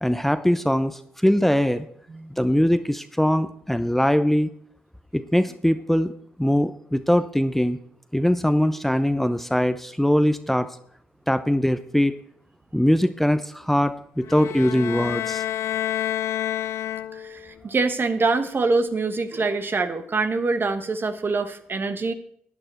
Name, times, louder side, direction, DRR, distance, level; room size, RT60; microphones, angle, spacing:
voice 1, 0.0-1.9 2.4-4.5 5.1-6.1 6.4-7.8 8.1-10.7 11.3-12.1 12.7-15.4, equal, 5° left, 11 dB, 0.7 m, -21 dB
sound 1, 14.3-17.5, left 12 dB, 65° left, 0.4 m, -28 dB
voice 2, 17.1-22.1, right 3 dB, 45° right, 9 dB, 1.2 m, -25 dB
12.5 x 9.0 x 4.5 m, 0.66 s
hypercardioid pair, 45°, 5 cm